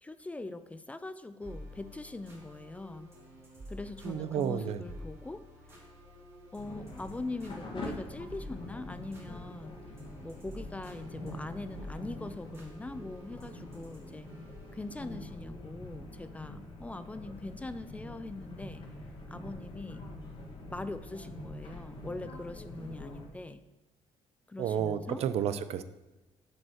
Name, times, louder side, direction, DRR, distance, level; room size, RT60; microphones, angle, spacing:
voice 1, 0.0-3.1 3.7-5.4 6.5-9.8 10.2-14.3 14.7-18.9 19.3-20.0 20.7-23.6 24.5-25.2, left 2 dB, 10° left, 12 dB, 0.3 m, -42 dB
sound 1, 1.4-15.2, equal, 25° right, 3.0 m, -50 dB
voice 2, 4.0-4.8 24.6-25.8, right 9 dB, 65° right, 12 dB, 0.5 m, -31 dB
sound 2, 6.6-23.3, left 1 dB, 50° left, 1.8 m, -45 dB
7.5 x 5.4 x 6.1 m, 1.1 s
cardioid pair, 145°, 11 cm